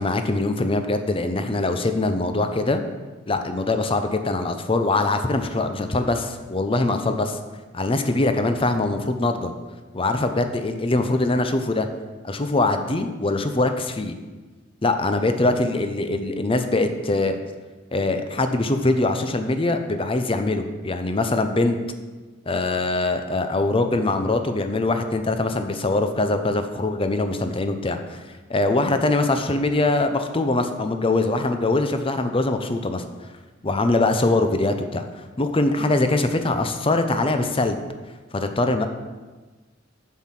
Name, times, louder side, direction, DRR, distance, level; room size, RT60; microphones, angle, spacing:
voice 1, 0.0-2.8 3.3-7.4 7.7-9.5 9.9-11.9 12.2-14.2 14.8-17.4 17.9-21.8 22.5-28.2 28.5-33.0 33.6-37.8 38.3-38.9, left 2 dB, 30° left, 8 dB, 0.7 m, -23 dB
7.3 x 6.5 x 5.8 m, 1.3 s
head